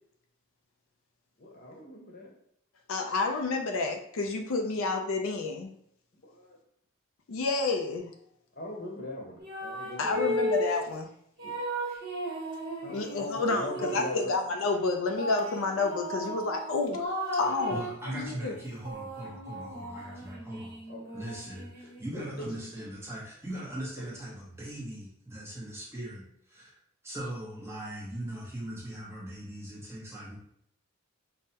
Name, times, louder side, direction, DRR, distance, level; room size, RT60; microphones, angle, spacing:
voice 1, 1.4-2.3 6.2-6.6 8.6-10.4 11.4-11.5 12.8-14.2 20.9-21.0 22.1-22.5, left 1 dB, 45° left, -1 dB, 0.9 m, -40 dB
voice 2, 2.9-5.7 7.3-8.1 10.0-11.1 12.9-17.1 17.4-18.6, left 3 dB, 75° left, 4 dB, 0.4 m, -30 dB
sound 1, 9.4-10.9 11.4-14.3 15.2-18.0 18.6-22.2, equal, 50° right, 1.1 m, -35 dB
voice 3, 17.7-20.8 21.1-26.7 27.0-30.4, right 1 dB, 10° right, -5 dB, 0.9 m, -40 dB
5.3 x 2.1 x 2.8 m, 0.71 s
head